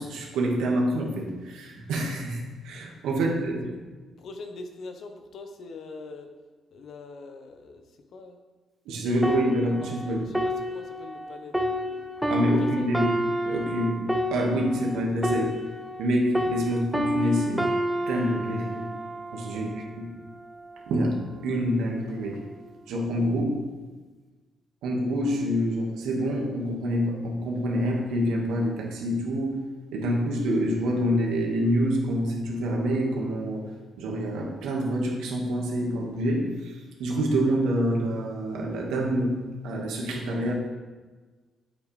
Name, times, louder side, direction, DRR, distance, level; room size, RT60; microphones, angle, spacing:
voice 1, 0.0-3.8 8.9-10.3 12.3-13.1 13.5-14.0 14.3-15.6 16.0-17.7 18.1-18.9 19.3-20.1 20.9-22.4 22.9-23.6 24.8-33.7 34.0-40.5, equal, 90° right, 0 dB, 1.8 m, -27 dB
voice 2, 4.2-6.3 6.7-7.8 8.1-8.4 10.0-12.2 12.6-12.9 19.5-20.0, left 3 dB, 65° left, 6 dB, 1.1 m, -43 dB
sound 1, 9.2-16.1 16.3-19.9 20.6-20.8, equal, 5° right, 0.9 m, -29 dB
8.8 x 7.9 x 3.4 m, 1.3 s
cardioid pair, 90°, 0 cm